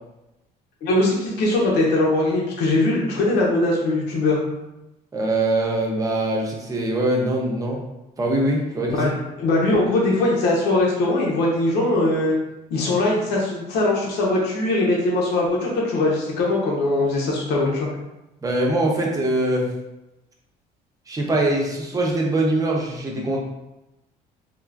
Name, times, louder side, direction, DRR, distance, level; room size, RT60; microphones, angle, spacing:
voice 1, 0.8-4.4 8.9-12.4 12.7-17.9, left 2 dB, 85° left, -3 dB, 0.8 m, -21 dB
voice 2, 5.1-7.8 8.2-9.1 18.4-19.7 21.1-23.4, right 1 dB, 20° right, -2 dB, 0.7 m, -22 dB
3.6 x 2.4 x 2.4 m, 0.95 s
cardioid pair, 110°, 17 cm